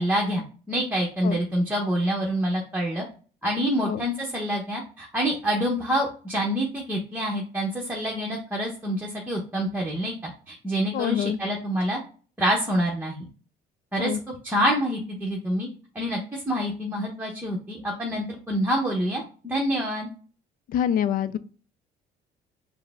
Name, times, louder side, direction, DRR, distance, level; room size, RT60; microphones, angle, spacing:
voice 1, 0.0-3.0 3.4-10.1 10.5-12.0 12.4-13.2 13.9-15.7 15.9-20.1, equal, 10° right, -2 dB, 0.9 m, -27 dB
voice 2, 10.9-11.4 14.0-14.2 20.7-21.4, left 9 dB, 55° left, 14 dB, 0.4 m, -25 dB
4.6 x 2.1 x 3.5 m, 0.39 s
cardioid pair, 110°, 17 cm